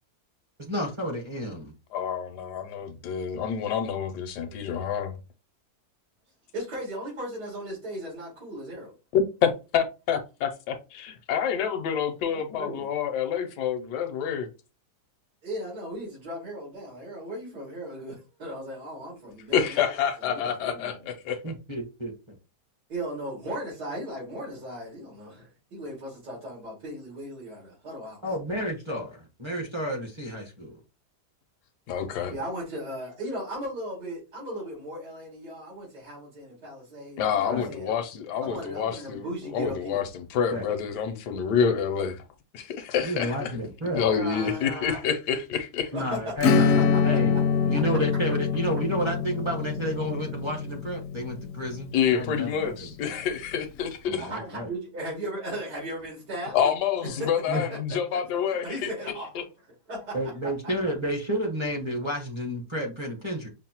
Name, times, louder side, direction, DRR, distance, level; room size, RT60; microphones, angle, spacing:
voice 1, 0.6-1.7 21.4-22.4 28.2-30.8 32.2-32.4 37.5-37.7 38.5-38.6 40.5-40.7 43.0-44.0 45.9-47.4 47.6-52.7 53.0-53.1 54.1-54.7 57.5-57.6 60.1-63.5, equal, 30° right, 0.5 m, -31 dB
voice 2, 1.9-5.2 9.1-14.5 19.5-21.5 31.9-32.3 37.2-42.2 42.5-43.5 43.9-45.9 51.9-54.3 56.5-58.9 59.3-59.4, left 7 dB, 85° left, 1.2 m, -28 dB
voice 3, 6.5-8.9 12.3-12.9 15.4-19.8 20.3-21.0 22.9-28.2 32.2-37.9 38.4-40.0 44.0-45.0 45.9-46.3 46.7-47.4 54.2-56.6 57.0-58.2 58.5-59.5 59.9-60.2, right 1 dB, 90° right, 2.6 m, -37 dB
Acoustic guitar / Strum, 46.4-52.6, left 5 dB, 70° left, 0.8 m, -25 dB
5.6 x 2.0 x 2.8 m
omnidirectional pair, 1.7 m